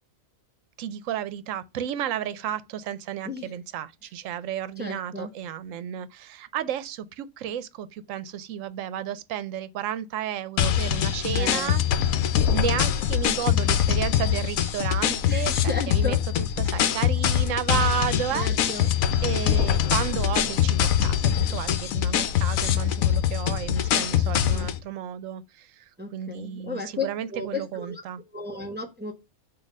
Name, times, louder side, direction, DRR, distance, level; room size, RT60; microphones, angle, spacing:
voice 1, 0.8-16.2 16.6-18.9 19.2-28.2, right 10 dB, 70° right, 1.0 m, -32 dB
voice 2, 4.8-5.3 11.3-11.8 15.3-16.2 18.3-18.9 24.2-24.7 26.0-28.0 28.3-29.1, left 3 dB, 10° right, 0.8 m, -34 dB
sound 1, 10.6-24.8, left 10 dB, 80° left, 1.0 m, -23 dB
7.1 x 2.7 x 5.3 m
omnidirectional pair, 1.4 m